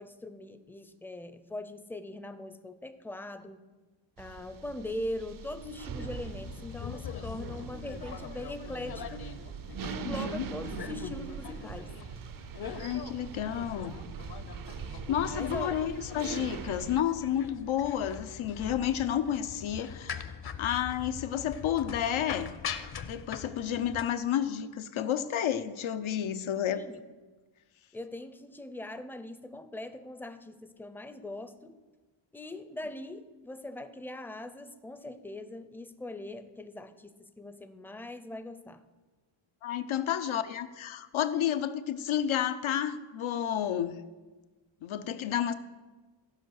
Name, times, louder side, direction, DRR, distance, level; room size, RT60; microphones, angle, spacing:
voice 1, 0.0-3.6 4.2-9.3 9.8-11.9 15.3-15.8 26.7-27.0 27.9-31.8 32.3-38.8, left 1 dB, 5° left, 10 dB, 0.4 m, -41 dB
sound 1, 4.2-17.0, right 8 dB, 50° right, 0.5 m, -42 dB
sound 2, 5.9-24.1, left 7 dB, 55° left, 0.8 m, -43 dB
voice 2, 10.0-10.5 12.8-14.0 15.1-20.2 20.6-22.5 23.1-26.8 39.6-44.0 44.8-45.5, left 10 dB, 90° left, 11 dB, 0.7 m, -31 dB
14.5 x 5.4 x 6.4 m, 1.3 s
wide cardioid pair, 135°, 47 cm